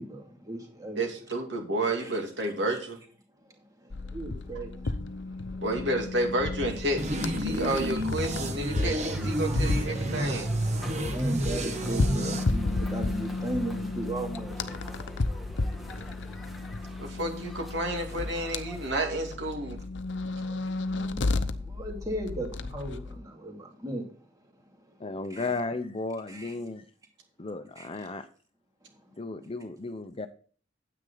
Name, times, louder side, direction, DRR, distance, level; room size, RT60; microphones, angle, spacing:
voice 1, 0.0-1.2 2.0-2.1 2.7-2.8 3.4-5.0 5.2-5.6 6.7-6.8 8.0-8.1 10.9-15.0 15.4-16.0 16.5-17.1 20.1-25.6 26.3-26.6 27.4-27.5 27.8-28.1 28.8-29.2, right 1 dB, 20° right, 2.4 m, -38 dB
voice 2, 1.0-3.0 5.6-10.5 17.0-19.8, right 1 dB, 65° right, 2.7 m, -30 dB
sound 1, 3.9-23.2, left 2 dB, 65° left, 0.7 m, -33 dB
sound 2, 7.0-12.4, right 1 dB, 40° right, 1.4 m, -30 dB
sound 3, 9.0-18.9, equal, ahead, 2.0 m, -45 dB
voice 3, 25.0-26.8 27.4-28.3 29.2-30.3, left 3 dB, 30° left, 0.7 m, -34 dB
9.6 x 8.7 x 3.9 m
head